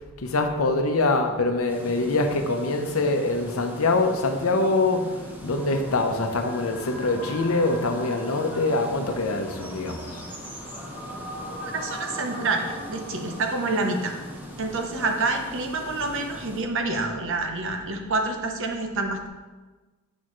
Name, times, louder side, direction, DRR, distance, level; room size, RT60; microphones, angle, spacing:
voice 1, 0.2-10.2, left 2 dB, 75° left, 5 dB, 0.8 m, -24 dB
sound 1, 1.7-16.6, equal, 10° right, 0.9 m, -41 dB
sound 2, 5.4-15.6, equal, 35° left, 2.1 m, -41 dB
voice 2, 11.6-14.2 14.6-19.3, right 3 dB, 60° right, 4 dB, 0.8 m, -27 dB
7.0 x 6.4 x 3.1 m, 1.3 s
head